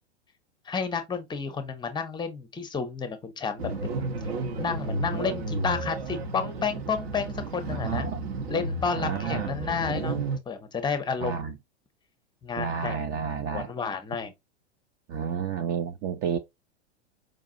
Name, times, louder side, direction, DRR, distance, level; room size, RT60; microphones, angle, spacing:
voice 1, 0.7-4.0 4.6-8.1 8.5-10.2 10.5-11.5 12.4-13.2 13.5-14.3, left 5 dB, 15° left, 0.7 m, -31 dB
sound 1, 3.6-10.4, right 2 dB, 60° right, 1.0 m, -32 dB
voice 2, 7.7-8.5 9.0-9.5 11.2-11.6 12.6-13.7 15.1-16.4, right 7 dB, 30° right, 0.4 m, -31 dB
5.0 x 2.4 x 2.5 m
figure-of-eight pair, 100°, 34 cm